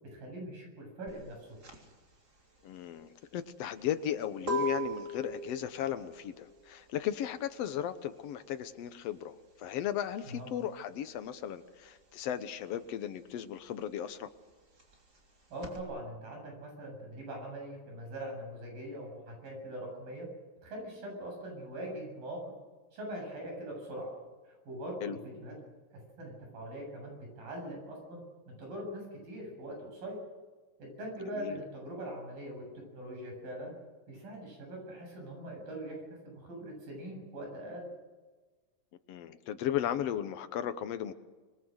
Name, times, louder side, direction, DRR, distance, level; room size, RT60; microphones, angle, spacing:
voice 1, 0.0-1.6 10.2-10.5 15.5-20.3 20.6-22.4 22.9-24.1 24.5-25.5 25.9-30.2 30.8-33.7 34.1-36.0 36.2-37.9, right 1 dB, 85° right, 1 dB, 9.5 m, -42 dB
sound 1, 1.1-11.3 11.6-15.8, right 1 dB, 30° right, 3.7 m, -40 dB
voice 2, 2.6-14.3 25.0-25.2 31.3-31.6 39.1-41.1, left 10 dB, 70° left, 10 dB, 1.6 m, -36 dB
27.0 x 21.0 x 6.5 m, 1.3 s
omnidirectional pair, 4.0 m